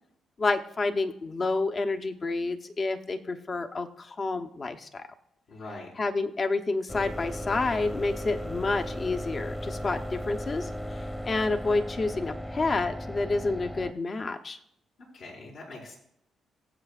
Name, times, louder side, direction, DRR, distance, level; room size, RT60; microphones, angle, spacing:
voice 1, 0.4-5.1 6.0-14.6, left 3 dB, 40° left, 6 dB, 0.9 m, -29 dB
voice 2, 5.5-5.9 15.0-15.9, left 2 dB, 80° left, -5 dB, 4.9 m, -43 dB
sound 1, 6.9-13.9, equal, 10° left, 0.9 m, -36 dB
21.0 x 7.9 x 2.5 m, 0.75 s
cardioid pair, 70°, 0 cm